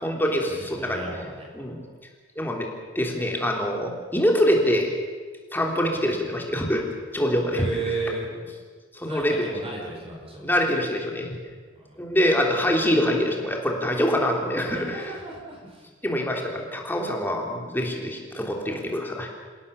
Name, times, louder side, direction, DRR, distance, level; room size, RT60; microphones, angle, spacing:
voice 1, 0.0-1.0 1.5-1.8 2.4-2.7 3.0-4.9 5.5-6.8 7.1-8.1 8.9-9.5 10.4-11.3 12.0-15.1 16.0-19.3, equal, 10° left, 1 dB, 3.4 m, -25 dB
voice 2, 0.8-1.5 6.0-6.2 7.5-8.3 9.0-9.3 9.5-10.6 11.8-12.0 14.7-15.9, right 3 dB, 30° right, -1 dB, 5.1 m, -34 dB
28.0 x 17.0 x 7.1 m, 1.5 s
head